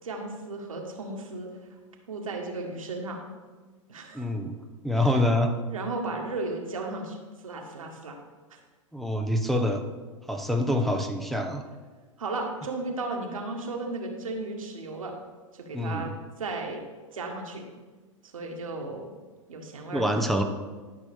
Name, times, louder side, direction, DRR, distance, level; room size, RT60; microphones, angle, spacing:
voice 1, 0.0-1.5 2.1-3.2 3.9-4.3 4.9-5.2 5.7-7.2 7.4-8.2 8.5-8.6 12.2-15.1 15.5-16.8 17.1-17.6 18.2-19.1 19.5-20.0, right 3 dB, 80° right, 2 dB, 1.6 m, -35 dB
voice 2, 4.1-4.6 4.8-5.6 8.9-9.8 10.3-11.6 15.7-16.1 19.9-20.4, left 1 dB, ahead, 3 dB, 0.7 m, -26 dB
12.0 x 6.1 x 3.5 m, 1.3 s
hypercardioid pair, 100°, 17 cm